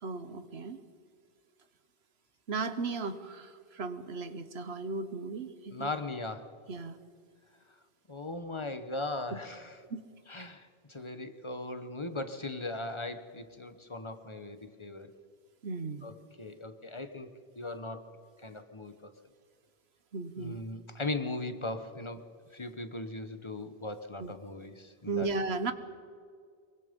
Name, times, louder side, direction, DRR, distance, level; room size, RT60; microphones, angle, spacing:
voice 1, 0.0-0.8 2.5-5.9 6.7-7.0 9.9-10.0 15.6-16.0 20.1-20.6 24.2-24.3 25.1-25.7, right 4 dB, 75° right, 11 dB, 1.3 m, -35 dB
voice 2, 5.7-6.5 8.1-9.8 10.3-15.1 16.0-18.1 18.4-19.1 20.4-22.2 22.5-25.3, left 2 dB, 30° left, 9 dB, 1.2 m, -39 dB
24.0 x 23.0 x 5.3 m, 2.1 s
omnidirectional pair, 1.1 m